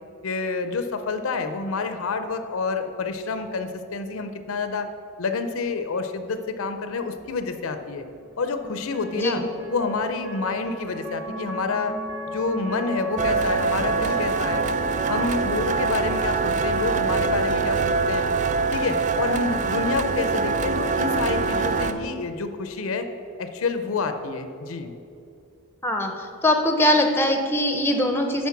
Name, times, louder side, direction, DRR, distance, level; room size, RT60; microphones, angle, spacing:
voice 1, 0.2-4.9 5.2-8.0 8.4-9.4 9.7-12.0 12.3-14.6 15.1-18.3 18.7-23.1 23.4-24.9, left 4 dB, 65° left, 8 dB, 0.5 m, -28 dB
sound 1, 7.2-17.5, equal, 15° right, 1.0 m, -37 dB
voice 2, 9.1-9.5 25.8-26.1 26.4-28.5, left 1 dB, 10° left, 4 dB, 0.6 m, -21 dB
sound 2, 13.2-21.9, right 4 dB, 35° right, 0.4 m, -24 dB
10.5 x 4.4 x 5.8 m, 2.6 s
head